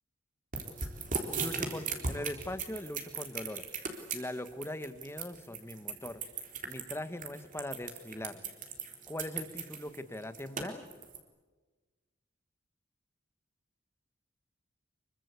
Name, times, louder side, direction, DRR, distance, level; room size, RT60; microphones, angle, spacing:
sound 1, 0.5-11.2, right 5 dB, 45° right, 3.9 m, -37 dB
voice 1, 1.3-3.6 4.1-6.2 6.6-8.4 9.1-10.8, left 1 dB, 15° left, 11 dB, 1.4 m, -40 dB
26.0 x 24.0 x 8.3 m, 1.3 s
head